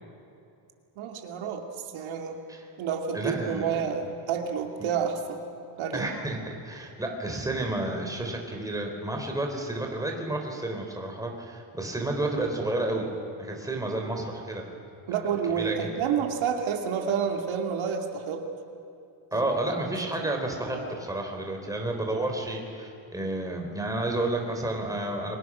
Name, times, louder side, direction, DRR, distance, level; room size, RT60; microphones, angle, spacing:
voice 1, 1.0-2.4 2.8-5.4 5.8-6.1 15.1-18.4 19.3-19.7 20.2-21.0, right 7 dB, 90° right, 3 dB, 2.7 m, -30 dB
voice 2, 3.1-3.8 4.8-4.9 5.9-13.1 13.4-14.7 15.5-16.1 19.3-25.4, right 2 dB, 5° right, 2 dB, 3.7 m, -31 dB
30.0 x 23.5 x 6.3 m, 2.7 s
cardioid pair, 145°, 46 cm